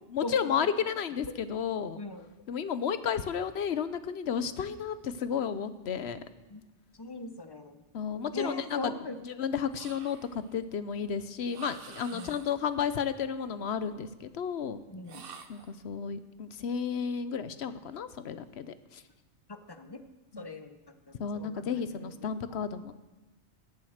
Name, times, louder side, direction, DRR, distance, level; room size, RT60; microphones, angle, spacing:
voice 1, 0.1-2.0 2.5-6.2 7.9-8.9 9.2-14.8 15.5-19.0 20.3-20.5 21.2-22.9, left 7 dB, 65° left, 13 dB, 1.0 m, -32 dB
voice 2, 7.0-7.8 8.3-9.2 12.1-12.4 14.9-15.2 19.5-20.0 20.4-20.8 21.3-22.1 22.5-22.6, left 2 dB, 25° left, 9 dB, 0.7 m, -40 dB
sound 1, 9.7-10.5 11.5-12.7 15.0-15.8, right 6 dB, 55° right, 1.0 m, -48 dB
17.0 x 7.5 x 6.5 m, 1.1 s
omnidirectional pair, 1.2 m